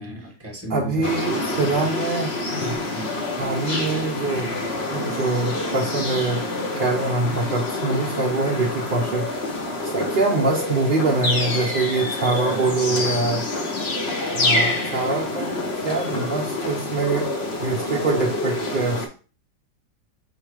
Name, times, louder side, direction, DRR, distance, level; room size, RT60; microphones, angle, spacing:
voice 1, 0.0-1.7 2.9-3.2 12.5-13.4, equal, 10° right, -1 dB, 1.0 m, -36 dB
voice 2, 0.7-2.8 3.4-6.4 6.8-13.5 14.3-15.6 15.8-17.3 17.6-19.1, right 3 dB, 75° right, -1 dB, 0.4 m, -24 dB
sound 1, 1.0-19.1, left 2 dB, 50° left, 0.9 m, -27 dB
5.3 x 2.1 x 4.7 m, 0.35 s
omnidirectional pair, 1.8 m